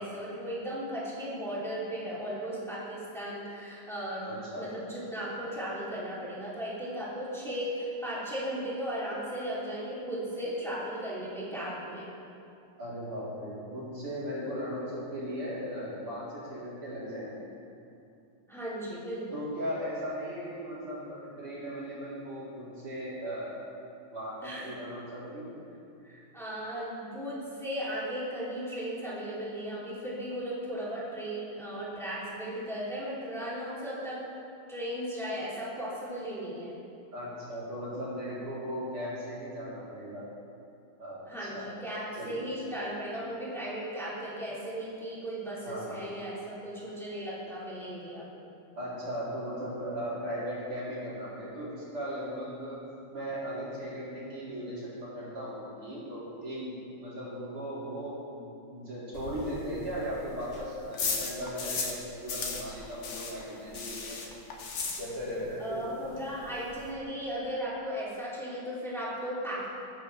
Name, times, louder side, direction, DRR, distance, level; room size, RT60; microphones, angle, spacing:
voice 1, 0.0-4.2 4.5-12.1 18.5-19.4 24.4-24.7 26.0-34.2 34.7-36.8 41.3-48.5 65.6-69.7, equal, ahead, -9 dB, 3.0 m, -36 dB
voice 2, 4.2-4.7 12.8-17.5 19.3-23.6 24.1-25.5 37.1-40.2 41.0-41.7 42.1-42.4 45.6-46.0 48.8-52.8 53.1-58.4 58.7-64.2 65.0-66.1, equal, 85° right, -9 dB, 4.7 m, -37 dB
sound 1, 59.1-62.0 62.3-65.5 65.7-65.8 66.2-66.3 66.4-66.9, left 4 dB, 80° left, 2.3 m, -36 dB
20.0 x 9.3 x 3.4 m, 2.6 s
omnidirectional pair, 2.3 m